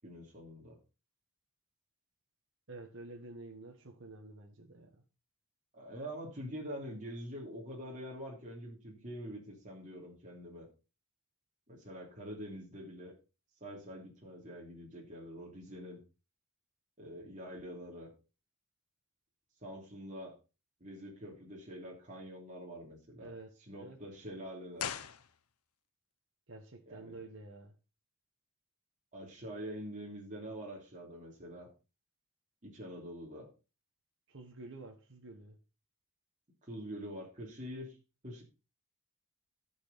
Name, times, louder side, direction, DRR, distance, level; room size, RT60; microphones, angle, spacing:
voice 1, 0.0-0.8 5.7-10.7 11.7-13.1 13.6-16.0 17.0-18.1 19.6-20.3 20.8-23.3 23.7-24.9 26.9-27.2 29.1-31.7 32.6-33.5 36.6-38.0 38.2-38.4, equal, 35° right, 3.0 m, -45 dB
voice 2, 2.7-5.0 23.2-24.0 26.5-27.7 34.3-35.6, right 2 dB, 60° right, 1.5 m, -50 dB
sound 1, 24.7-25.9 26.1-26.2, left 8 dB, 85° left, 0.8 m, -41 dB
14.0 x 6.3 x 4.2 m
head